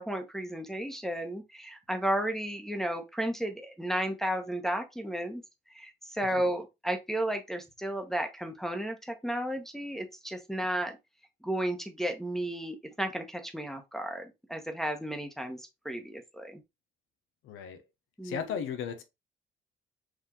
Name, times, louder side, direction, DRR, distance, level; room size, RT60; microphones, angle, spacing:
voice 1, 0.0-5.4 5.7-10.9 11.4-16.6 18.2-18.6, right 1 dB, ahead, 1.0 m, -33 dB
voice 2, 17.4-17.8 18.2-19.0, left 7 dB, 85° left, 0.9 m, -35 dB
4.8 x 2.7 x 3.7 m
cardioid pair, 90°, 20 cm